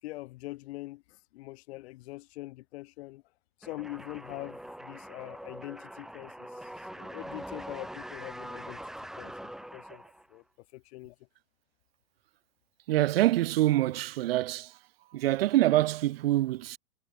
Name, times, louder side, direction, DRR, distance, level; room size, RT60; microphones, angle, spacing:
voice 1, 0.0-3.2 3.6-10.0 10.3-11.2, left 19 dB, 45° left, 2.7 m, -43 dB
sound 1, 3.6-10.4, equal, ahead, 2.8 m, -43 dB
voice 2, 12.9-14.7 15.1-16.8, right 15 dB, 45° right, 0.4 m, -25 dB
hypercardioid pair, 135°, 43 cm